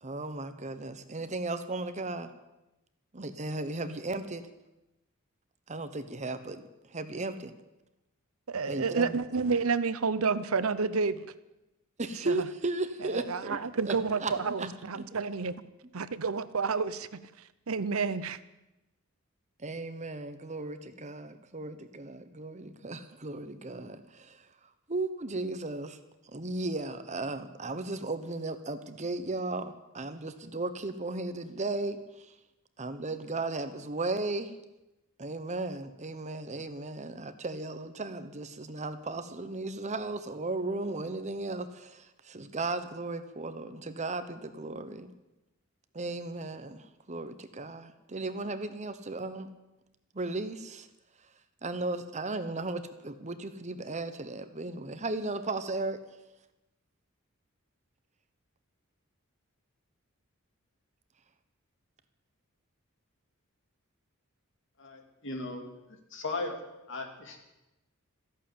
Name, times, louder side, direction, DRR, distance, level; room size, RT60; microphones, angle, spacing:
voice 1, 0.0-2.3 3.1-4.4 5.7-7.5 8.7-9.2 12.0-13.6 13.8-13.9 14.2-14.3 14.6-15.1 19.6-24.5 24.9-26.0 26.3-32.3 32.8-34.5 35.2-45.1 45.9-49.5 50.1-50.9 51.6-56.0, right 2 dB, 35° right, 10 dB, 1.0 m, -35 dB
voice 2, 8.5-11.3 12.2-12.3 13.1-15.6 15.9-17.2 17.7-18.4, right 4 dB, 75° right, 15 dB, 0.8 m, -30 dB
voice 3, 64.8-65.7 66.1-66.6 66.9-67.4, left 3 dB, 60° left, 4 dB, 2.7 m, -36 dB
14.0 x 11.0 x 8.7 m, 0.97 s
head